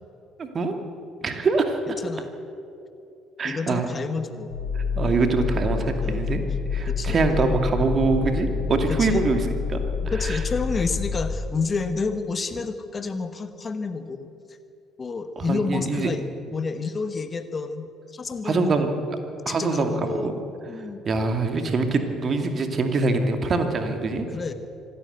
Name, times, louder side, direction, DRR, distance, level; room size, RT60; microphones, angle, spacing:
voice 1, 0.4-0.8 1.2-2.0 3.4-3.9 4.8-6.4 6.7-9.4 9.7-9.8 10.2-10.4 15.4-16.1 18.4-18.9 19.5-20.3 21.0-24.3, right 3 dB, 40° right, 6 dB, 2.4 m, -24 dB
voice 2, 3.4-4.5 6.0-6.3 6.9-7.2 8.9-9.3 10.0-14.3 15.0-16.3 16.5-18.7 19.5-20.3 20.7-21.0 24.3-24.5, left 4 dB, 30° left, 10 dB, 1.2 m, -29 dB
sound 1, 4.5-11.4, left 5 dB, 75° left, 3.9 m, -28 dB
25.5 x 12.5 x 8.1 m, 2.8 s
figure-of-eight pair, 50°, 0 cm